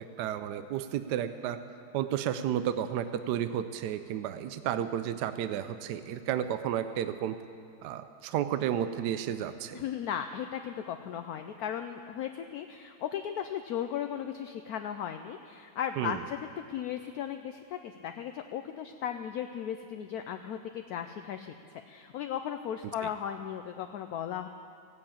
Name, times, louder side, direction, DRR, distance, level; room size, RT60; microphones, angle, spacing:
voice 1, 0.0-1.6 1.9-7.4 7.8-9.8 16.0-16.2 23.0-23.1, right 10 dB, 75° right, 11 dB, 1.0 m, -32 dB
voice 2, 9.7-24.5, left 9 dB, 75° left, 7 dB, 0.9 m, -36 dB
16.0 x 8.6 x 8.6 m, 2.4 s
omnidirectional pair, 2.0 m